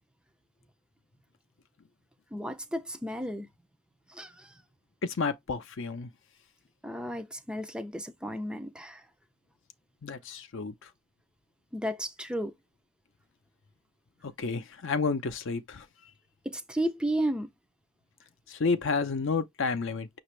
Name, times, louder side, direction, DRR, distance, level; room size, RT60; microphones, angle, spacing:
voice 1, 2.3-3.5 4.1-4.5 6.8-9.0 11.7-12.5 16.5-17.5, right 1 dB, 5° right, 0.4 m, -33 dB
voice 2, 5.0-6.1 10.0-10.9 14.2-15.9 18.5-20.1, left 4 dB, 60° left, 0.6 m, -30 dB
5.9 x 2.6 x 3.1 m
head